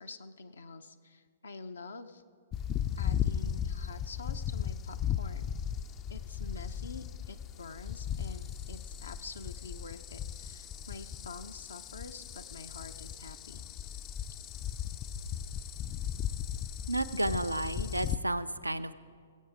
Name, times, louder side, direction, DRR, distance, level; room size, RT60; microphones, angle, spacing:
voice 1, 0.0-2.2 3.0-5.5 6.1-13.6, left 3 dB, 70° left, 8 dB, 0.6 m, -47 dB
sound 1, 2.5-18.2, left 9 dB, 25° left, 0.4 m, -36 dB
voice 2, 16.9-18.9, right 1 dB, 85° right, 13 dB, 0.4 m, -32 dB
20.0 x 8.5 x 4.9 m, 2.1 s
figure-of-eight pair, 120°, 0 cm